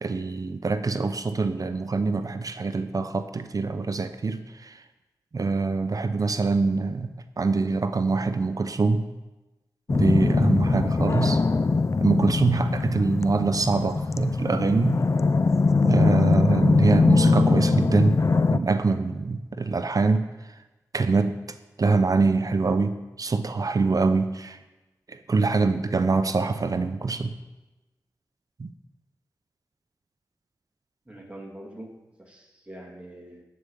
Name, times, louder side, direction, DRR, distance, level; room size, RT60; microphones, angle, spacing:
voice 1, 0.0-4.8 5.3-7.1 7.4-9.1 9.9-11.4 12.0-15.0 15.8-18.2 18.5-20.2 20.9-21.4 21.8-24.6 25.1-27.4 28.6-28.7, right 4 dB, 50° right, 10 dB, 0.6 m, -24 dB
sound 1, 9.9-18.6, left 4 dB, 40° left, 0.5 m, -22 dB
voice 2, 31.1-33.4, right 1 dB, 15° right, 0 dB, 2.4 m, -44 dB
10.5 x 4.9 x 7.1 m, 1.1 s
cardioid pair, 40°, 7 cm